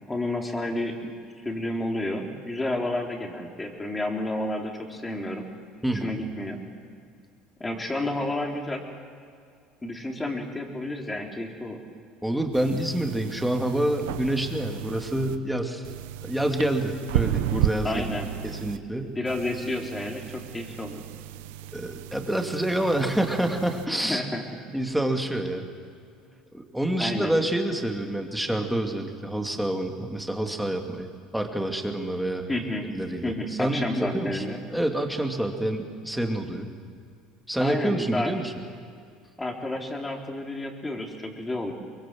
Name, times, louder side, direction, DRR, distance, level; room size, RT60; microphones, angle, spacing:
voice 1, 0.1-1.1 1.4-5.5 6.0-6.6 7.6-8.8 9.8-11.8 17.8-18.3 19.2-21.0 24.1-24.4 27.0-27.3 32.5-32.9 33.2-34.6 37.6-38.3 39.4-41.7, left 1 dB, 15° left, 2 dB, 3.7 m, -30 dB
voice 2, 5.8-6.1 12.2-15.8 16.2-18.2 18.4-19.1 21.7-24.2 24.7-25.7 26.5-31.1 31.3-32.5 32.9-34.4 34.7-36.7 37.5-38.5, right 1 dB, ahead, 3 dB, 2.7 m, -27 dB
sound 1, 12.5-15.4 15.8-18.8 19.3-23.9, right 12 dB, 85° right, 0.9 m, -33 dB
24.0 x 22.0 x 7.8 m, 2.2 s
supercardioid pair, 95°, 0 cm